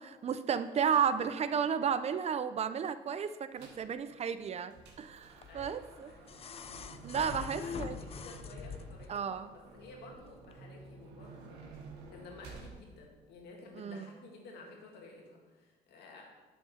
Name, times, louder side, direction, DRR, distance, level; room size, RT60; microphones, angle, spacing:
voice 1, 0.0-4.7 5.0-6.1 7.0-8.0 9.1-9.5 13.8-14.1, right 7 dB, 40° right, 12 dB, 0.5 m, -33 dB
sound 1, 3.6-3.9 4.4-12.8, right 4 dB, 85° right, 1.8 m, -51 dB
sound 2, 5.4-9.2 10.4-10.5, left 6 dB, 35° left, 0.5 m, -44 dB
voice 2, 5.5-6.4 7.1-11.6 12.1-16.2, left 3 dB, 75° left, 0 dB, 2.2 m, -53 dB
11.0 x 6.2 x 4.3 m, 1.3 s
cardioid pair, 110°, 17 cm